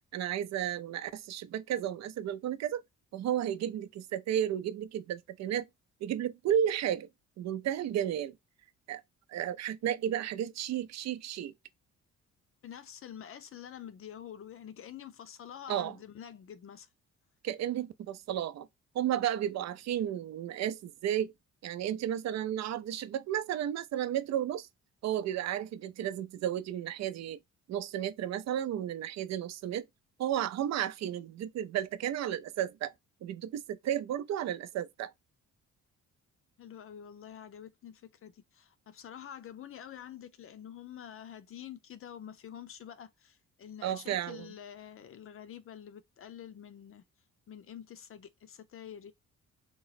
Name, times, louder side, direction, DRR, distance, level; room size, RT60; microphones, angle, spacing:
voice 1, 0.1-2.8 3.1-5.7 6.0-7.1 7.4-8.3 8.9-9.0 9.3-11.5 15.7-15.9 17.4-18.7 18.9-21.3 21.6-24.7 25.0-27.4 27.7-29.9 30.2-32.9 33.2-35.1 43.8-44.5, right 10 dB, 60° right, 0.5 m, -33 dB
voice 2, 12.6-16.9 36.6-47.1 47.5-49.1, left 9 dB, 45° left, 0.6 m, -47 dB
3.0 x 2.1 x 4.0 m
cardioid pair, 90°, 30 cm